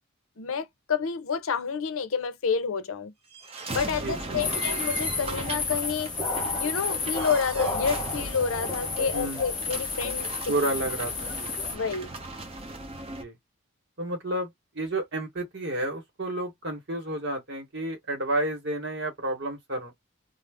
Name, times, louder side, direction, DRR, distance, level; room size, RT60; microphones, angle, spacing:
voice 1, 0.4-3.1 3.7-6.1 6.6-10.3 11.7-12.1, left 6 dB, 80° left, 0.5 m, -29 dB
sound 1, 3.3-13.2, right 2 dB, 30° right, 0.5 m, -37 dB
voice 2, 4.0-4.6 9.1-9.4 10.5-11.5 13.1-13.4 14.0-14.5 14.7-19.9, right 1 dB, 55° right, 1.0 m, -31 dB
sound 2, 4.4-11.7, left 4 dB, 20° left, 0.9 m, -32 dB
2.5 x 2.0 x 3.4 m
head